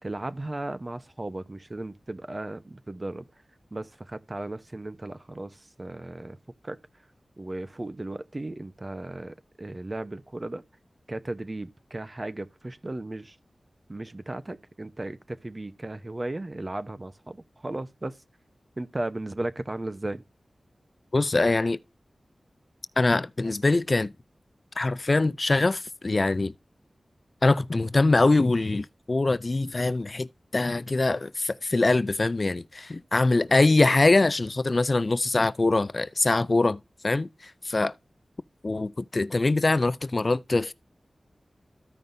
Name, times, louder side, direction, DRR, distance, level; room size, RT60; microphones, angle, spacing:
voice 1, 0.0-3.3 3.7-6.4 6.6-6.8 7.4-10.6 11.1-13.4 13.9-18.2 18.8-20.2, right 2 dB, 30° right, 0.8 m, -35 dB
voice 2, 21.1-21.8 23.0-24.1 24.8-26.5 27.4-30.3 30.5-37.9 38.6-40.7, left 2 dB, 45° left, 0.4 m, -23 dB
14.5 x 5.3 x 2.6 m
wide cardioid pair, 70°, 0 cm